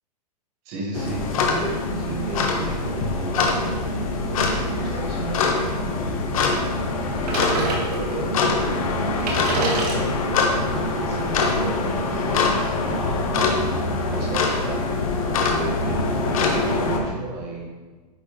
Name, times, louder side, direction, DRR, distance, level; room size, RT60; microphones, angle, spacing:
voice 1, 0.7-3.8 4.3-6.5 7.2-8.7 9.3-13.5 14.0-14.9 15.2-17.7, right 2 dB, 35° right, -3 dB, 1.7 m, -34 dB
sound 1, 0.9-17.0, left 3 dB, 55° left, 1.1 m, -24 dB
sound 2, 7.2-8.3 8.9-9.0 9.2-12.2, right 2 dB, 70° right, 1.7 m, -28 dB
9.5 x 4.1 x 3.2 m, 1.3 s
hypercardioid pair, 160°, 21 cm